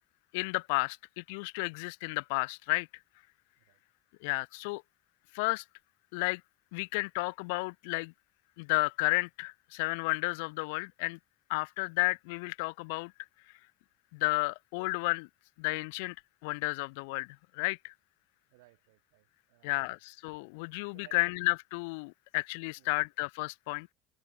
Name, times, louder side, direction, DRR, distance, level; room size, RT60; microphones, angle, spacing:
voice 1, 0.3-2.9 4.2-4.8 5.3-5.6 6.1-6.4 6.7-8.1 8.6-11.2 11.5-13.1 14.1-15.3 15.6-16.2 16.4-17.9 19.6-23.9, left 29 dB, 75° left, 0.5 m, -32 dB
voice 2, 18.5-20.0 20.9-21.2 22.8-23.0, right 24 dB, 80° right, 7.9 m, -62 dB
open air
hypercardioid pair, 75°, 0 cm